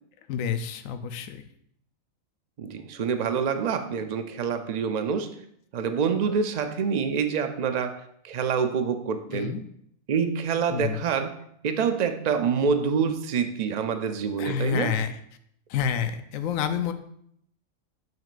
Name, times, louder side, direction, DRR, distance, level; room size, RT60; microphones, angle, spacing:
voice 1, 0.3-1.4 9.3-9.6 10.7-11.1 14.4-15.2 15.7-16.9, left 8 dB, 80° left, 9 dB, 1.0 m, -28 dB
voice 2, 2.6-5.4 5.7-9.5 10.1-11.4 11.6-15.0, right 6 dB, 75° right, 8 dB, 0.3 m, -26 dB
8.9 x 6.0 x 2.5 m, 0.70 s
omnidirectional pair, 1.4 m